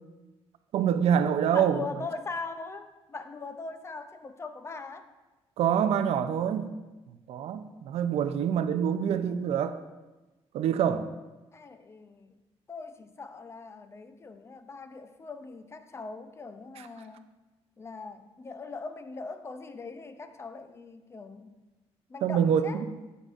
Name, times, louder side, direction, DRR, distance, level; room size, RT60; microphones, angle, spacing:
voice 1, 0.7-1.8 5.6-6.7 7.3-9.8 10.5-11.1 22.2-22.9, right 8 dB, 75° right, 10 dB, 0.5 m, -26 dB
voice 2, 1.5-5.1 9.1-9.4 11.5-12.4 12.7-17.3 17.8-21.5 22.1-22.8, left 4 dB, 25° left, 9 dB, 0.5 m, -41 dB
8.9 x 8.0 x 2.5 m, 1.1 s
cardioid pair, 135°, 10 cm